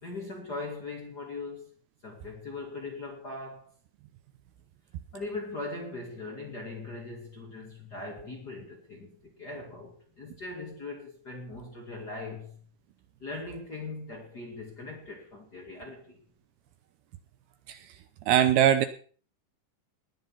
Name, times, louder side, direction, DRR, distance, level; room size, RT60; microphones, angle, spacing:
voice 1, 0.0-1.7 2.0-3.7 5.1-12.6 13.2-16.2, left 3 dB, 35° left, 1.9 m, -40 dB
voice 2, 18.3-18.9, right 10 dB, 75° right, 2.5 m, -21 dB
20.0 x 7.3 x 5.6 m
omnidirectional pair, 5.0 m